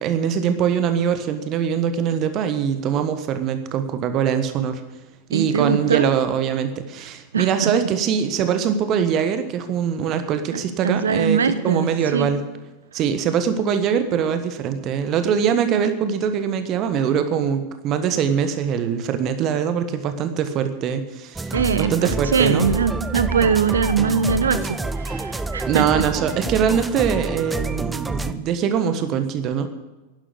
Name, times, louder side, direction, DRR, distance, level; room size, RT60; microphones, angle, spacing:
voice 1, 0.0-4.8 5.3-12.4 12.9-21.5 21.8-22.7 25.7-29.7, right 7 dB, 35° right, 9 dB, 1.3 m, -22 dB
voice 2, 5.3-6.1 7.3-7.7 10.5-12.3 21.5-21.9 22.3-26.0, right 6 dB, 70° right, 12 dB, 1.0 m, -22 dB
sound 1, 21.3-28.3, right 2 dB, 10° right, 0.7 m, -28 dB
11.5 x 11.5 x 8.2 m, 1.1 s
figure-of-eight pair, 90°, 0 cm